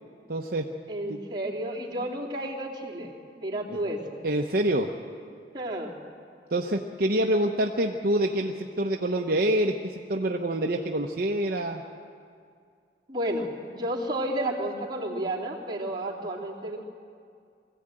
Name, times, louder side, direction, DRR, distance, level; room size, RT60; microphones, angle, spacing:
voice 1, 0.3-0.7 1.1-1.2 3.7-3.8 4.2-4.9 6.5-11.8, right 1 dB, 55° right, 2 dB, 0.9 m, -26 dB
voice 2, 0.9-4.2 5.5-5.9 13.1-16.8, right 1 dB, 25° right, -5 dB, 3.2 m, -32 dB
22.0 x 15.0 x 8.9 m, 2.3 s
head